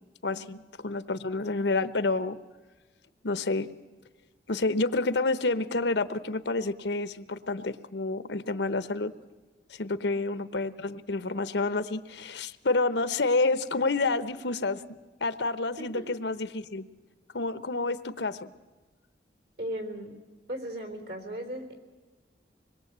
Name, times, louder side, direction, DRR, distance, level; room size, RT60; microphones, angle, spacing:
voice 1, 0.2-2.4 3.2-3.7 4.5-9.1 9.7-14.8 15.2-16.9 17.3-18.5, left 3 dB, 75° left, 13 dB, 0.9 m, -29 dB
voice 2, 19.6-20.1 20.5-21.7, right 1 dB, 60° right, 7 dB, 3.9 m, -37 dB
25.5 x 21.5 x 8.1 m, 1.3 s
head